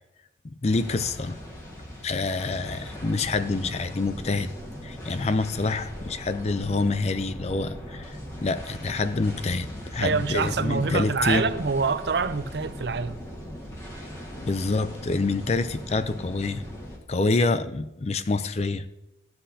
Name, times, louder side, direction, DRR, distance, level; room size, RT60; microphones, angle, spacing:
voice 1, 0.6-1.4 2.0-4.5 4.8-11.5 14.4-16.6 17.1-18.9, left 3 dB, 35° left, 0.4 m, -27 dB
sound 1, 0.7-17.0, equal, 15° left, 1.6 m, -39 dB
voice 2, 10.0-13.2, right 5 dB, 60° right, 0.5 m, -26 dB
14.5 x 7.8 x 2.8 m
head